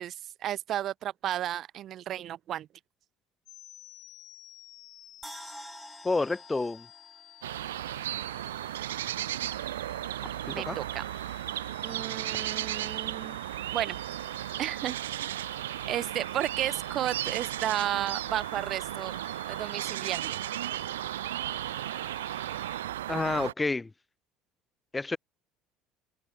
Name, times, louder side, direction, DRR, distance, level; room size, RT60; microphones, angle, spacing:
voice 1, 0.0-2.7 10.5-11.1 11.8-13.4 13.7-14.0 14.6-15.0 15.9-19.2 19.5-20.4, right 12 dB, 50° right, 1.7 m, -33 dB
sound 1, 3.4-22.8, left 13 dB, 55° left, 4.6 m, -53 dB
sound 2, 5.2-8.4 8.8-8.9, equal, 5° right, 2.8 m, -48 dB
voice 2, 6.0-6.9 10.5-10.8 23.1-23.9 24.9-25.2, left 3 dB, 15° left, 1.0 m, -29 dB
sound 3, 7.4-23.5, right 13 dB, 80° right, 1.6 m, -35 dB
open air
hypercardioid pair, 65°, 0 cm